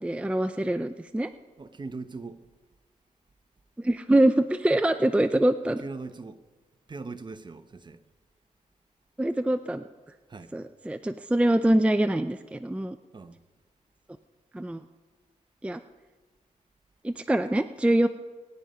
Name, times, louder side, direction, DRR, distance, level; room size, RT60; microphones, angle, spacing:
voice 1, 0.0-1.3 3.8-5.8 9.2-9.8 10.5-13.0 14.5-14.8 15.6-15.8 17.0-18.1, right 1 dB, 10° right, 0.5 m, -24 dB
voice 2, 1.6-2.5 5.8-6.4 6.9-8.0 10.3-10.5 13.1-13.4, right 3 dB, 35° right, 0.9 m, -40 dB
21.5 x 9.3 x 5.6 m
wide cardioid pair, 95°, 13 cm